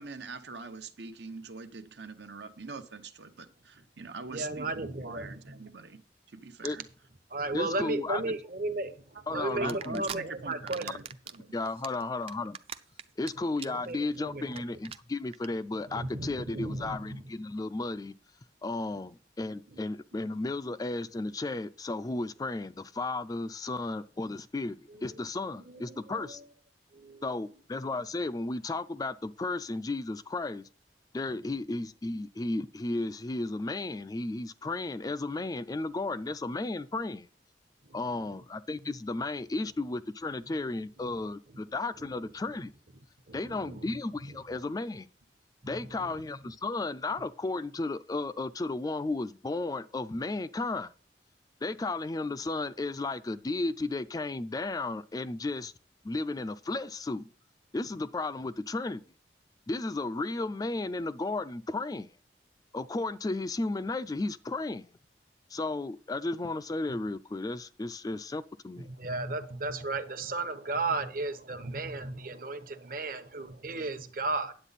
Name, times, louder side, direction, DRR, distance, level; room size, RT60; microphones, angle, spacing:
voice 1, 0.0-6.0 6.3-6.8 9.6-11.5, right 4 dB, 80° right, 1.0 m, -43 dB
voice 2, 4.3-5.6 7.3-10.9 13.7-14.6 15.9-17.2 19.7-19.8 25.7-26.4 26.9-27.2 37.9-38.0 43.3-43.9 45.6-46.2 68.9-74.5, right 2 dB, 50° right, 1.0 m, -35 dB
voice 3, 7.5-8.4 9.3-10.0 11.5-12.6 13.2-18.1 18.6-26.4 27.2-30.7 31.1-37.3 37.9-42.7 43.3-45.1 45.6-50.9 51.6-55.7 56.0-57.3 57.7-59.0 59.7-62.1 62.7-64.9 65.5-68.9, left 2 dB, 20° left, 0.3 m, -34 dB
sound 1, 9.7-10.2 10.5-11.4 11.7-13.3 13.6-13.9 14.1-14.2 14.5-14.6 14.8-15.0 15.3-15.5, right 8 dB, 35° right, 0.5 m, -40 dB
9.9 x 8.0 x 4.1 m
head